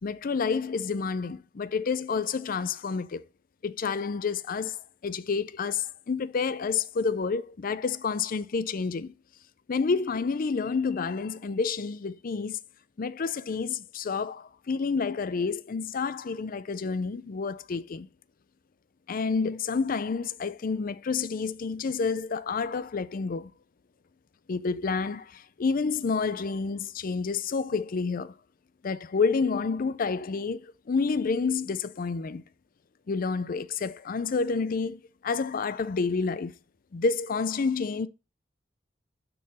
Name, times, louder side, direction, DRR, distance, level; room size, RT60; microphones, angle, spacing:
voice 1, 0.0-3.2 3.6-9.1 9.7-12.6 13.0-18.1 19.1-23.5 24.5-28.3 28.8-32.4 33.1-36.5 36.9-38.1, left 5 dB, 50° left, 0.4 m, -29 dB
9.3 x 3.9 x 4.1 m
head